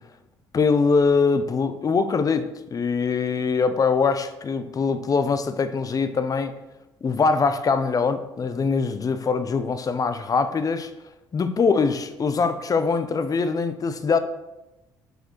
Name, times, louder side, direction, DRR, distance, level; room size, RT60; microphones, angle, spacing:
voice 1, 0.5-6.5 7.0-10.9 11.3-14.2, left 5 dB, 40° left, 11 dB, 0.7 m, -23 dB
6.8 x 4.5 x 4.5 m, 0.98 s
supercardioid pair, 65°, 10 cm